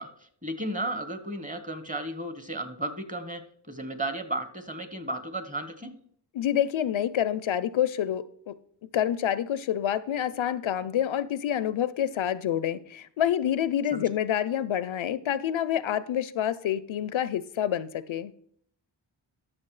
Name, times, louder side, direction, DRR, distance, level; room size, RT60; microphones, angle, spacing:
voice 1, 0.0-3.4 3.7-5.9 13.9-14.0, right 1 dB, 15° right, 9 dB, 1.1 m, -34 dB
voice 2, 6.3-8.6 8.9-18.3, left 10 dB, 80° left, 16 dB, 0.5 m, -27 dB
13.0 x 6.4 x 3.2 m, 0.66 s
wide cardioid pair, 50°, 47 cm